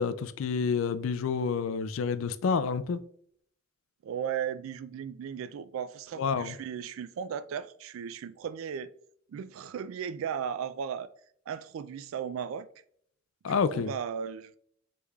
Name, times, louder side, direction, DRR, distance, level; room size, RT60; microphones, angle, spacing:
voice 1, 0.0-3.0 6.2-6.6 13.4-13.9, left 5 dB, 70° left, 0.4 m, -29 dB
voice 2, 4.0-8.9 9.3-11.1 11.5-12.7 13.5-14.6, right 7 dB, 75° right, 0.3 m, -36 dB
5.3 x 3.3 x 2.3 m
head